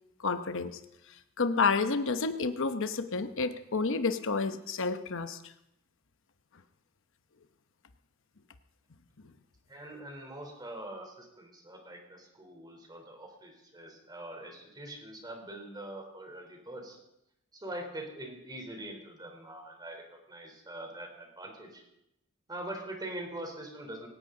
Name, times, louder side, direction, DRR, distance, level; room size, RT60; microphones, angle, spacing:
voice 1, 0.2-0.8 1.4-5.5, left 4 dB, 65° left, 8 dB, 0.9 m, -30 dB
voice 2, 9.7-17.0 17.5-21.8 22.5-24.1, right 1 dB, 20° right, 3 dB, 3.6 m, -43 dB
18.5 x 17.5 x 3.9 m, 0.83 s
head